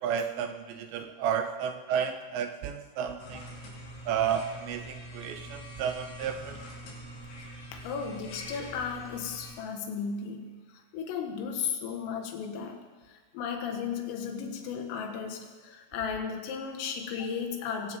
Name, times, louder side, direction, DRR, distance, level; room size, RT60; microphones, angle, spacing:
voice 1, 0.0-3.6 4.1-6.6, right 8 dB, 80° right, 7 dB, 2.7 m, -32 dB
sound 1, 3.2-9.5, equal, 65° left, 6.1 m, -44 dB
voice 2, 7.7-18.0, left 6 dB, 90° left, 3 dB, 4.2 m, -35 dB
21.5 x 17.5 x 3.6 m, 1.4 s
omnidirectional pair, 5.7 m